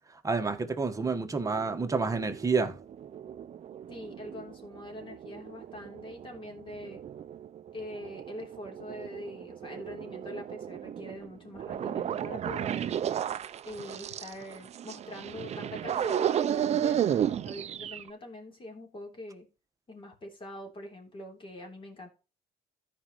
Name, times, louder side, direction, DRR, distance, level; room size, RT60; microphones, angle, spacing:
voice 1, 0.2-2.8, right 4 dB, 20° right, 1.3 m, -29 dB
sound 1, 1.2-18.1, right 9 dB, 40° right, 0.5 m, -34 dB
voice 2, 3.9-7.0 7.7-13.0 13.7-19.5 19.9-22.1, left 1 dB, 30° left, 3.3 m, -43 dB
14.0 x 5.2 x 3.0 m
cardioid pair, 110°, 17 cm